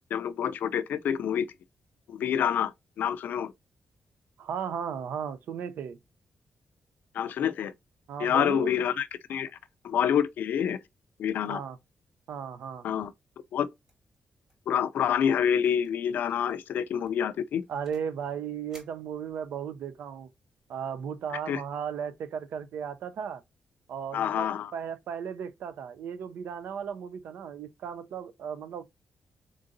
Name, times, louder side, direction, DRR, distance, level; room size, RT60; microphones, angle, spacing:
voice 1, 0.1-1.5 2.1-2.7 3.0-3.5 7.1-7.7 8.2-9.5 9.8-10.8 11.2-11.6 12.8-13.1 13.5-13.7 14.7-17.6 21.5-21.6 24.1-24.7, left 8 dB, 85° left, 0.4 m, -27 dB
voice 2, 4.4-6.0 8.1-8.8 11.5-11.8 12.3-12.8 17.7-20.3 20.7-23.4 23.9-28.8, right 7 dB, 85° right, 0.4 m, -36 dB
sound 1, 13.9-14.2 14.5-14.7 15.0-15.1 15.6-15.9 16.3-16.5 17.0-18.2 18.7-19.7, right 1 dB, 25° right, 2.0 m, -58 dB
3.7 x 3.7 x 2.5 m
cardioid pair, 95°, 3 cm